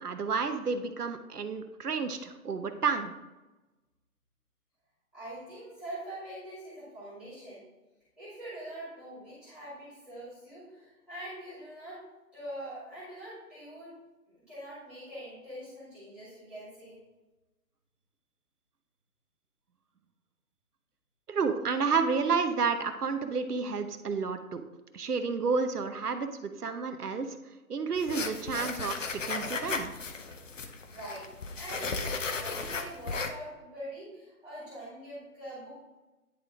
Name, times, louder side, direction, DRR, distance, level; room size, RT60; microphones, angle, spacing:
voice 1, 0.0-3.1 21.3-24.6 24.9-27.4 27.7-29.9, right 5 dB, 80° right, 8 dB, 1.0 m, -30 dB
voice 2, 5.1-7.6 8.2-12.0 12.3-13.9 14.3-17.0 30.9-31.2 31.6-36.0, right 1 dB, ahead, -15 dB, 2.0 m, -44 dB
sound 1, 28.0-33.3, left 4 dB, 55° left, 0.8 m, -35 dB
10.5 x 3.6 x 3.7 m, 1.1 s
hypercardioid pair, 165°, 45 cm